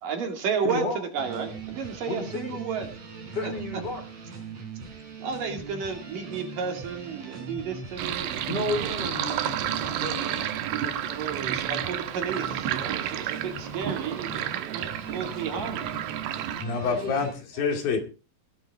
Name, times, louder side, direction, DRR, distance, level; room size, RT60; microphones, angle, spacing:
voice 1, 0.0-2.9 3.4-3.5 5.2-8.9 11.1-15.8, right 6 dB, 65° right, 3.9 m, -32 dB
voice 2, 0.6-1.0 2.1-2.6 3.3-4.0 8.5-11.5 16.5-17.1, left 2 dB, 30° left, 4.0 m, -33 dB
sound 1, 1.2-17.3, right 5 dB, 50° right, 4.8 m, -40 dB
Sink (filling or washing), 8.0-16.6, right 11 dB, 85° right, 2.9 m, -31 dB
voice 3, 16.6-18.0, left 5 dB, 70° left, 4.3 m, -27 dB
18.0 x 12.0 x 3.6 m
omnidirectional pair, 4.2 m